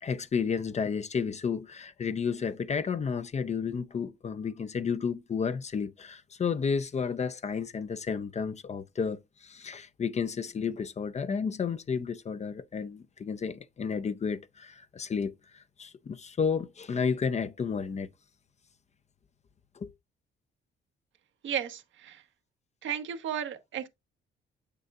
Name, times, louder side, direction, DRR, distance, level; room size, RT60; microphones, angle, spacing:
voice 1, 0.0-18.1 19.8-19.9, left 6 dB, 35° left, 0.5 m, -32 dB
voice 2, 21.4-22.1 22.8-23.9, right 9 dB, 70° right, 1.0 m, -34 dB
7.5 x 6.7 x 2.3 m
cardioid pair, 90°, 20 cm